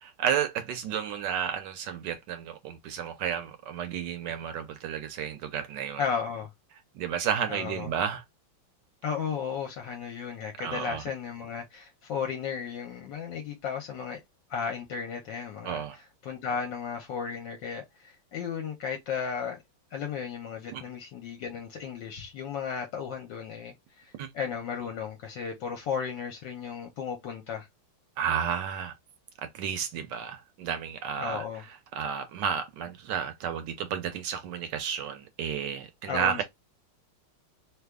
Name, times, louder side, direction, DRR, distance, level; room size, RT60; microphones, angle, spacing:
voice 1, 0.0-6.0 6.9-8.2 10.6-11.0 15.6-16.0 20.7-20.8 24.2-24.3 28.2-28.9 29.4-31.4 32.0-36.4, right 8 dB, 75° right, 1.1 m, -32 dB
voice 2, 6.0-6.5 7.5-7.9 9.0-14.2 14.5-19.6 19.9-27.7 31.2-31.6 36.1-36.4, left 6 dB, 70° left, 1.3 m, -34 dB
3.2 x 2.2 x 3.4 m
omnidirectional pair, 2.2 m